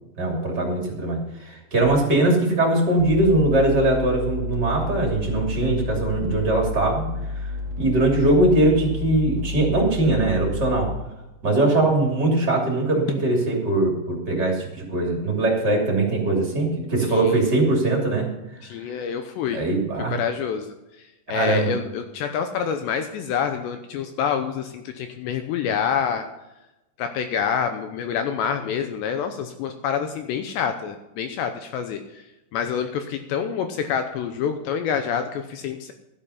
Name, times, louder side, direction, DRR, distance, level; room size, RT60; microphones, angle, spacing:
voice 1, 0.2-7.1 7.4-7.5 7.8-10.9 11.4-18.3 19.5-20.1 21.3-21.7, right 2 dB, 25° right, -1 dB, 2.5 m, -21 dB
sound 1, 1.8-1.9 3.0-11.0, left 3 dB, 45° right, 2.7 m, -31 dB
voice 2, 17.1-17.4 18.6-19.6 20.1-26.3 27.0-32.3 32.5-35.9, left 7 dB, 80° left, 7 dB, 2.6 m, -27 dB
13.5 x 10.0 x 5.8 m, 0.96 s
omnidirectional pair, 5.8 m